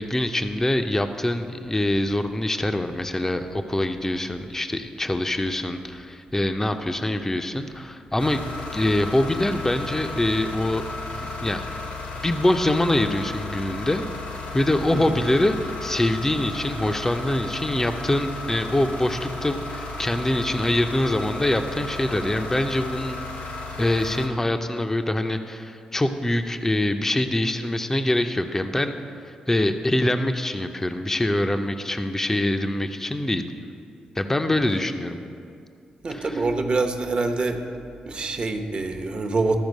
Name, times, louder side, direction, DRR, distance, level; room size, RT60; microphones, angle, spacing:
voice 1, 0.0-8.5 8.7-10.8 11.1-11.6 12.2-15.5 15.8-23.4 23.8-28.9 29.3-33.4 34.2-35.2 36.1-36.4, left 1 dB, 15° left, 7 dB, 0.6 m, -24 dB
sound 1, 8.2-24.3, left 2 dB, 80° left, 1.2 m, -34 dB
voice 2, 36.0-37.6 38.0-39.6, right 3 dB, 45° right, 5 dB, 0.9 m, -25 dB
12.5 x 4.4 x 5.3 m, 2.5 s
supercardioid pair, 55°, 3 cm